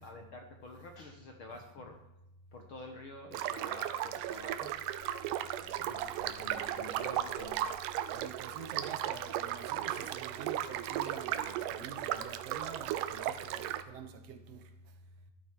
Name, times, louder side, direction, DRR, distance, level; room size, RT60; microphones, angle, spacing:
voice 1, 0.0-2.0 2.5-5.0 5.4-5.6 5.9-7.8, left 2 dB, 60° left, 1.4 m, -49 dB
sound 1, 3.3-13.8, right 12 dB, 85° right, 2.2 m, -36 dB
voice 2, 5.6-6.3 7.0-7.1 7.9-14.7, right 5 dB, 60° right, 1.8 m, -47 dB
13.5 x 12.0 x 4.6 m
omnidirectional pair, 3.8 m